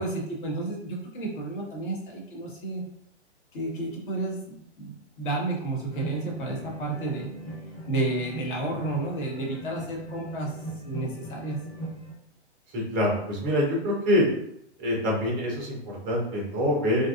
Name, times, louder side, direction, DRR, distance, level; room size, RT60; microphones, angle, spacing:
voice 1, 0.0-2.8 3.5-7.3 7.9-10.5 10.8-11.6, right 2 dB, 45° left, -2 dB, 0.9 m, -31 dB
sound 1, 5.9-12.1, right 2 dB, 5° left, 0.8 m, -39 dB
voice 2, 12.7-14.3 14.8-17.1, left 1 dB, 15° right, -2 dB, 0.4 m, -25 dB
2.7 x 2.3 x 2.3 m, 0.72 s
figure-of-eight pair, 120°, 35 cm